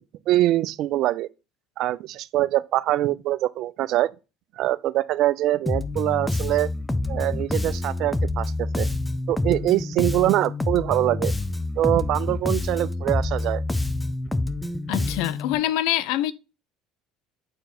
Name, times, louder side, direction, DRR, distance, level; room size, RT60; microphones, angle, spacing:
voice 1, 0.3-1.3 1.8-4.1 4.6-6.7 7.1-8.9 9.3-11.3 11.8-13.6, right 14 dB, 60° right, 0.4 m, -23 dB
Bass guitar, 5.7-15.5, left 2 dB, 10° left, 0.7 m, -27 dB
voice 2, 14.9-16.3, left 13 dB, 70° left, 0.5 m, -25 dB
7.8 x 4.7 x 4.2 m
hypercardioid pair, 65°, 0 cm